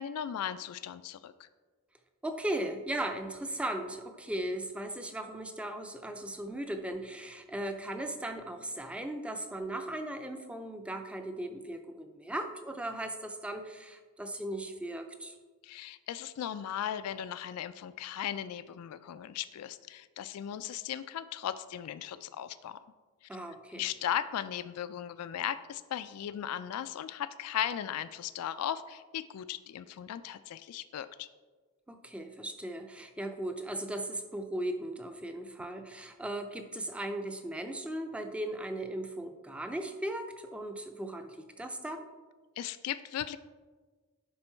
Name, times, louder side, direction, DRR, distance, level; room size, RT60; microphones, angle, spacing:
voice 1, 0.0-1.5 15.6-22.8 23.7-31.3 42.6-43.4, left 10 dB, 85° left, 13 dB, 0.3 m, -37 dB
voice 2, 2.2-15.4 23.3-23.8 31.9-42.0, right 1 dB, 5° right, 6 dB, 0.4 m, -37 dB
10.5 x 3.8 x 4.4 m, 1.4 s
head